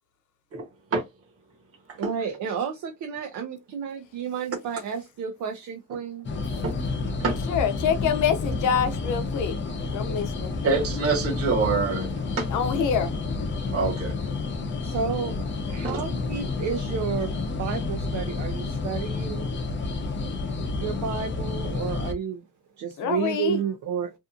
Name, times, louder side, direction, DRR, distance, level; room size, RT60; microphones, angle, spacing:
voice 1, 1.9-6.3 14.8-15.4 15.7-17.3 17.6-19.5 20.8-22.4 22.8-24.1, right 7 dB, 75° right, 0.6 m, -31 dB
sound 1, 6.2-22.1, left 3 dB, 40° left, 0.6 m, -30 dB
voice 2, 7.5-9.6 9.9-10.6 12.5-13.1 23.0-23.6, left 7 dB, 80° left, 0.7 m, -26 dB
voice 3, 10.6-12.1 12.4-12.5 13.7-14.1 15.8-16.0, right 4 dB, 50° right, 1.0 m, -25 dB
2.6 x 2.4 x 2.4 m
cardioid pair, 90°, 30 cm